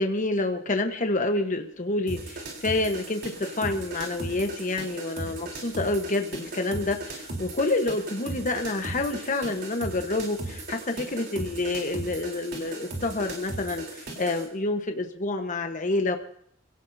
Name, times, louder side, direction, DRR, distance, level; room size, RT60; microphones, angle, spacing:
voice 1, 0.0-16.2, left 2 dB, 40° left, 5 dB, 1.1 m, -28 dB
sound 1, 2.1-14.5, right 2 dB, 55° right, 3.6 m, -37 dB
28.0 x 17.0 x 2.7 m, 0.65 s
head